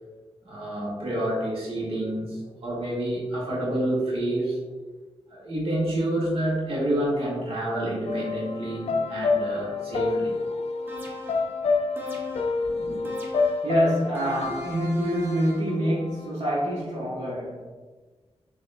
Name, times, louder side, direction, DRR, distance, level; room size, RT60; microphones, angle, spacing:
voice 1, 0.4-4.6 5.3-10.6 12.6-13.0, right 1 dB, 60° right, -5 dB, 1.4 m, -28 dB
sound 1, 8.1-16.3, left 4 dB, 75° left, 0.4 m, -29 dB
sound 2, 10.9-11.5 12.0-12.6 13.1-13.7 14.2-15.7, equal, 20° right, 0.8 m, -37 dB
voice 2, 13.6-17.7, equal, 80° right, -8 dB, 1.1 m, -26 dB
7.3 x 2.8 x 2.2 m, 1.3 s
wide cardioid pair, 125°, 11 cm